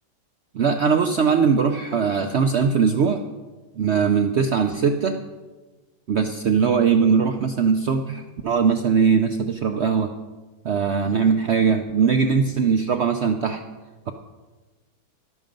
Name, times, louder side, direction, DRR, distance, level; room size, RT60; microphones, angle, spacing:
voice 1, 0.5-3.2 3.8-5.2 6.1-10.1 10.6-13.6, right 6 dB, 80° right, 6 dB, 0.6 m, -20 dB
13.0 x 11.5 x 5.2 m, 1.3 s
omnidirectional pair, 1.9 m